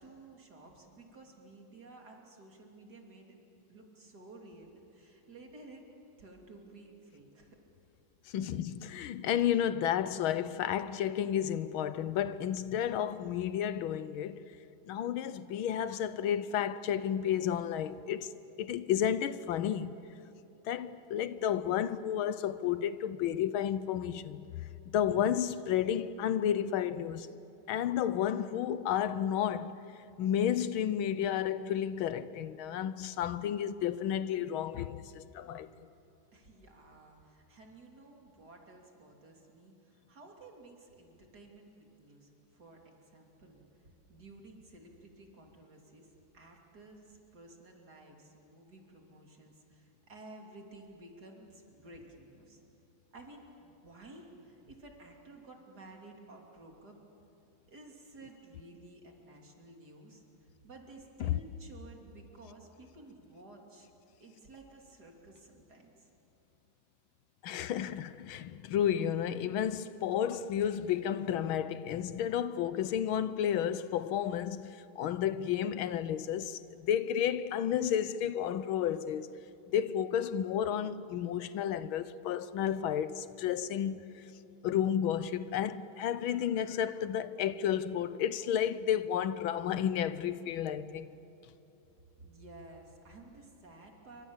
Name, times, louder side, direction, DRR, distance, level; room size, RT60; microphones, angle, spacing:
voice 1, 0.0-3.4 3.7-5.9 6.2-7.6 36.3-52.6 53.1-57.0 57.7-63.9 64.2-66.1 92.2-94.2, right 2 dB, 50° right, 3.5 m, -53 dB
voice 2, 8.3-14.6 14.9-18.3 18.6-20.0 20.6-27.3 27.7-29.8 30.2-35.7 61.2-61.4 67.4-79.3 79.7-84.2 84.6-91.1, left 9 dB, 80° left, 1.6 m, -32 dB
28.0 x 25.0 x 7.3 m
omnidirectional pair, 2.3 m